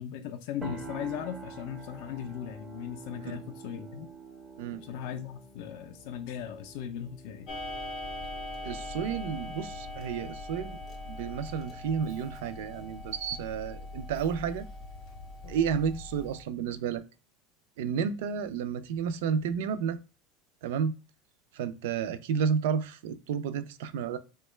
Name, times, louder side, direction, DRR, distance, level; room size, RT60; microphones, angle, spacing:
voice 1, 0.0-4.1 4.8-7.5, left 9 dB, 55° left, 0.3 m, -38 dB
sound 1, 0.6-10.3, right 3 dB, 10° right, 0.4 m, -47 dB
Clock, 7.5-16.4, left 2 dB, 30° left, 0.7 m, -41 dB
voice 2, 8.6-10.8 11.1-14.7 15.5-17.0 17.8-20.0 20.6-20.9 21.5-24.2, right 7 dB, 70° right, 0.4 m, -31 dB
3.6 x 2.2 x 3.1 m
supercardioid pair, 180°, 0 cm